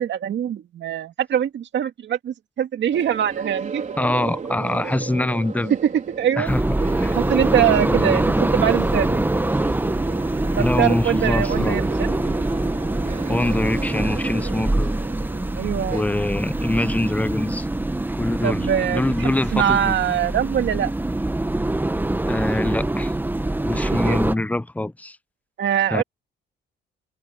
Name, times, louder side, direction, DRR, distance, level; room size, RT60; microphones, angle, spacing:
voice 1, 0.0-3.8 5.7-6.5 7.1-9.3 10.6-12.1 15.6-16.0 18.4-20.9 23.7-24.2 25.6-26.0, right 9 dB, 65° right, 2.2 m, -23 dB
sound 1, 2.9-16.0, right 5 dB, 40° right, 4.4 m, -34 dB
voice 2, 4.0-5.7 6.4-7.1 7.8-8.2 10.6-11.8 13.3-14.9 15.9-17.7 18.2-18.7 18.9-20.0 22.3-23.1 23.6-25.2 25.9-26.0, left 2 dB, 5° left, 0.8 m, -24 dB
sound 2, 6.4-24.3, right 2 dB, 10° right, 1.1 m, -24 dB
cardioid pair, 90°, 20 cm